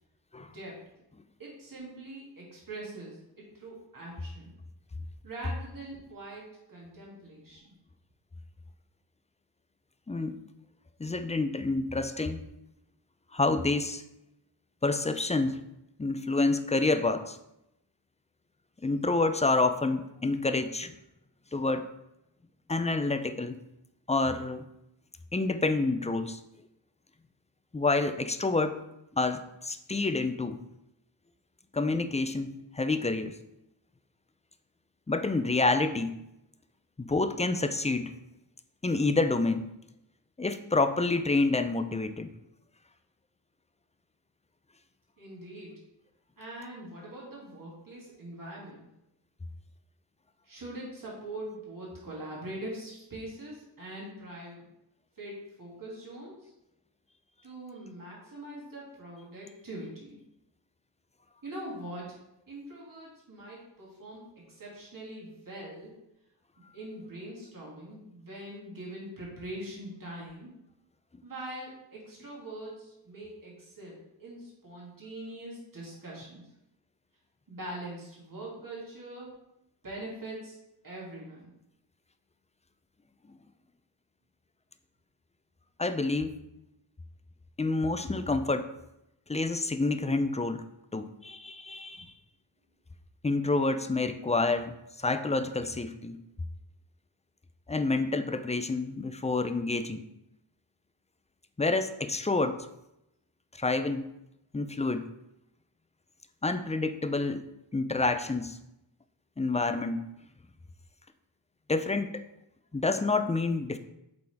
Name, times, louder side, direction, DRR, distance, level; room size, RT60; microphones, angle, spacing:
voice 1, 0.4-0.8 1.4-4.5 5.2-7.7 45.2-45.8 46.4-48.9 50.4-54.7 55.2-56.5 57.4-60.2 61.4-62.2 62.5-66.0 66.7-70.5 71.2-76.4 77.5-79.3 79.8-80.6 80.8-81.5, right 1 dB, 45° right, -5 dB, 2.5 m, -43 dB
voice 2, 10.1-10.4 11.0-12.4 13.3-14.0 14.8-15.6 16.0-17.4 18.8-20.9 21.5-21.9 22.7-23.6 24.1-24.7 25.3-26.4 27.7-28.8 29.1-30.6 31.7-33.3 35.1-36.2 37.0-38.2 38.8-39.7 40.4-42.3 85.8-86.4 87.6-88.7 89.3-90.6 90.9-92.1 93.2-96.2 97.7-100.0 101.6-102.7 103.6-104.1 104.5-105.1 106.4-107.4 107.7-108.6 109.4-110.1 111.7-112.2 112.7-113.8, left 3 dB, 15° left, 10 dB, 0.4 m, -28 dB
7.7 x 4.2 x 3.5 m, 0.85 s
cardioid pair, 55°, 48 cm